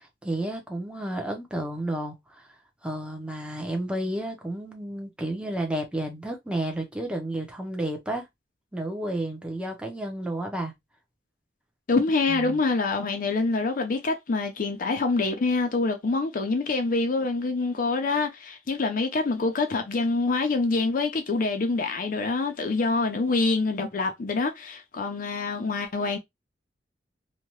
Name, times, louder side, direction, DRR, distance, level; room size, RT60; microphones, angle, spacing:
voice 1, 0.0-2.5 2.8-8.3 8.7-10.7 12.3-12.6, right 1 dB, 5° right, 0.7 m, -31 dB
voice 2, 11.9-26.2, left 3 dB, 50° left, 0.5 m, -26 dB
2.7 x 2.2 x 3.0 m
head